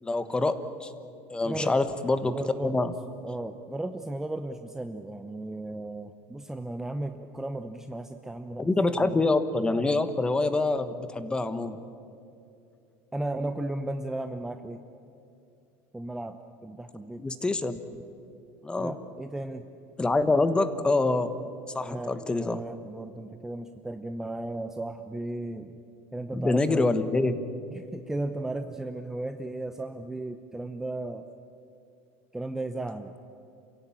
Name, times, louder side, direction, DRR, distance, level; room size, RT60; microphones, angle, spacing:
voice 1, 0.0-0.9 1.3-2.4 2.6-2.9 8.6-11.8 17.2-17.8 18.6-19.0 20.0-21.3 21.7-22.6 26.3-27.4, left 2 dB, 10° left, 11 dB, 1.3 m, -26 dB
voice 2, 1.4-1.7 2.3-2.7 3.2-8.7 9.0-9.3 13.1-14.8 15.9-16.4 16.6-17.2 18.8-19.6 21.8-25.8 26.1-26.9 27.7-31.3 32.3-33.1, right 2 dB, 5° right, 7 dB, 0.8 m, -35 dB
28.0 x 16.0 x 8.8 m, 2.6 s
supercardioid pair, 140°, 8 cm